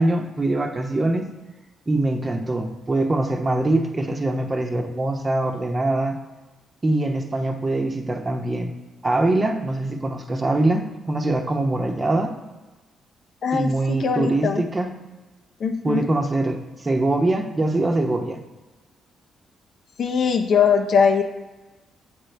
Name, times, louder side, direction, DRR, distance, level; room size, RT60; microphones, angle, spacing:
voice 1, 0.0-1.3 1.9-6.2 6.8-8.7 9.0-12.3 13.5-14.9 15.8-18.4, right 2 dB, 30° right, 4 dB, 0.9 m, -23 dB
voice 2, 13.4-14.6 15.6-16.1 20.0-21.2, left 6 dB, 65° left, 6 dB, 0.6 m, -21 dB
7.8 x 3.7 x 3.3 m, 1.2 s
supercardioid pair, 60°, 0 cm